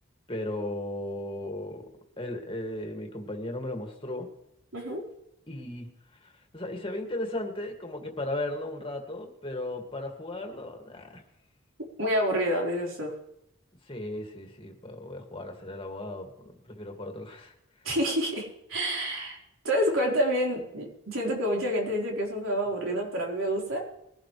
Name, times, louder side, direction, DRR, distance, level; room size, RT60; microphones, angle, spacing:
voice 1, 0.3-1.9 2.2-4.3 5.5-5.9 6.2-11.2 13.8-17.5, left 1 dB, 25° left, 2 dB, 2.2 m, -36 dB
voice 2, 12.0-13.1 17.8-19.4 19.6-23.8, equal, 75° right, -1 dB, 4.4 m, -28 dB
22.0 x 11.5 x 3.3 m, 0.80 s
head